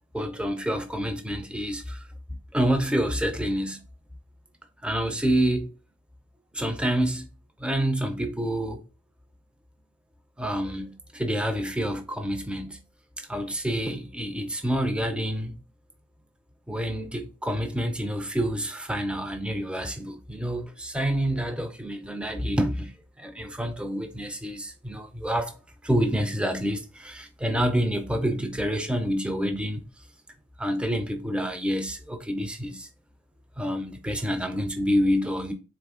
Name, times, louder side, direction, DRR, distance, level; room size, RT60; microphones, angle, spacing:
voice 1, 0.1-2.1 2.5-3.8 4.8-5.7 6.5-7.3 7.6-8.8 10.4-12.8 13.2-15.6 16.7-25.6 25.8-29.8 30.6-32.9 33.6-35.5, equal, 5° right, 0.4 m, -28 dB
4.0 x 3.4 x 3.5 m
head